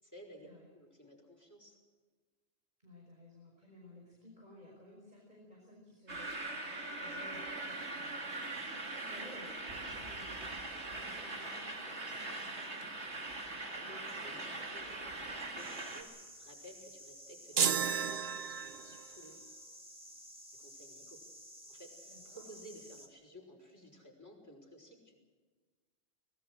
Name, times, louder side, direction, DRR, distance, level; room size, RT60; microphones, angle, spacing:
voice 1, 0.0-0.5 0.7-1.8 13.7-19.5 20.5-21.2 21.7-25.2, equal, 15° left, 1 dB, 5.6 m, -55 dB
voice 2, 2.8-12.9 22.1-22.4, left 1 dB, 40° right, -2 dB, 5.4 m, -57 dB
sound 1, 6.1-16.0, right 2 dB, 90° right, 3.2 m, -41 dB
sound 2, 15.6-23.1, equal, 5° right, 2.7 m, -53 dB
sound 3, 17.6-19.1, right 7 dB, 65° right, 1.1 m, -32 dB
24.0 x 20.5 x 6.5 m, 1.4 s
omnidirectional pair, 1.1 m